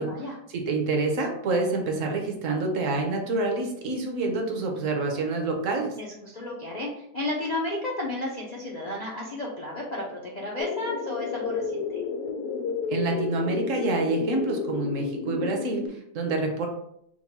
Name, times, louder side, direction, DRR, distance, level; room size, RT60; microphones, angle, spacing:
voice 1, 0.0-5.9 12.9-16.7, right 3 dB, 60° right, 2 dB, 1.0 m, -27 dB
voice 2, 6.0-12.0, left 1 dB, 85° left, -3 dB, 0.3 m, -33 dB
sound 1, 10.6-15.9, left 5 dB, 70° left, 0.9 m, -31 dB
4.6 x 2.2 x 4.1 m, 0.75 s
omnidirectional pair, 1.8 m